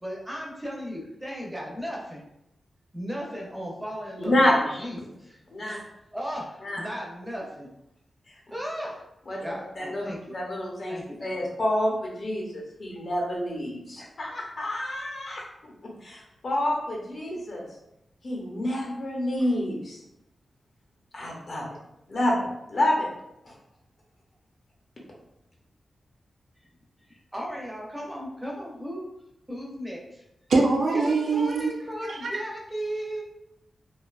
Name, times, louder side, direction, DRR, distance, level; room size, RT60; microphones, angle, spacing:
voice 1, 0.0-2.2 2.9-5.4 6.1-7.7 8.5-9.0 9.4-10.2 10.9-11.3 27.1-29.0 29.5-30.2 30.9-33.2, equal, 5° right, -3 dB, 0.5 m, -36 dB
voice 2, 4.2-4.9 5.5-5.8 6.6-6.8 8.3-8.4 9.3-17.6 18.2-20.0 21.1-21.6 22.1-23.1 23.4-23.5, left 1 dB, 50° left, -3 dB, 0.7 m, -28 dB
voice 3, 30.5-31.7 32.1-32.3, right 3 dB, 65° right, 1 dB, 0.3 m, -23 dB
2.5 x 2.2 x 2.3 m, 0.85 s
wide cardioid pair, 150°, 0 cm